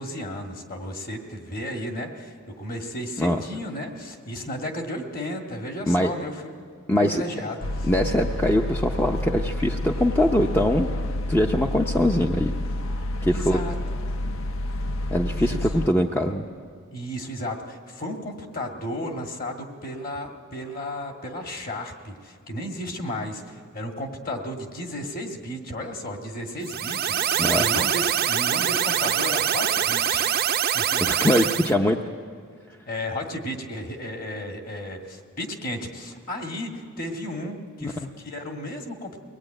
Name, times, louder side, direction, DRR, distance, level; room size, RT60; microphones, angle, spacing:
voice 1, 0.0-6.5 7.0-7.7 13.3-13.7 15.4-15.6 16.9-30.3 30.7-31.3 32.8-39.2, left 1 dB, 40° left, 3 dB, 2.0 m, -34 dB
voice 2, 6.9-7.2 7.8-10.9 11.3-12.5 13.2-13.6 15.1-16.5 27.4-27.6 31.0-32.0 37.8-37.9, left 1 dB, 10° left, 2 dB, 0.6 m, -22 dB
sound 1, 7.6-15.9, left 1 dB, 70° left, 0.6 m, -29 dB
sound 2, 26.6-31.7, right 9 dB, 45° right, 0.6 m, -24 dB
23.0 x 18.5 x 9.0 m, 2.1 s
head